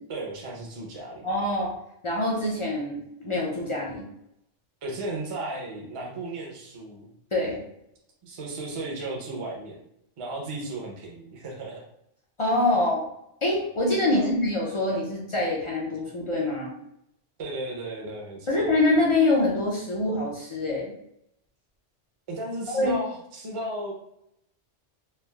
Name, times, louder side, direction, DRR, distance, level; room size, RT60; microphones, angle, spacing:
voice 1, 0.1-1.2 4.8-7.1 8.2-9.9 10.2-11.8 14.1-14.3 17.4-18.7 22.3-23.9, right 2 dB, 35° right, -2 dB, 0.5 m, -35 dB
voice 2, 1.2-1.7 2.0-4.0 7.3-7.6 12.4-13.1 13.4-16.7 18.5-20.9 22.7-23.0, left 2 dB, 55° left, -3 dB, 0.3 m, -25 dB
3.2 x 2.4 x 2.2 m, 0.77 s
omnidirectional pair, 1.2 m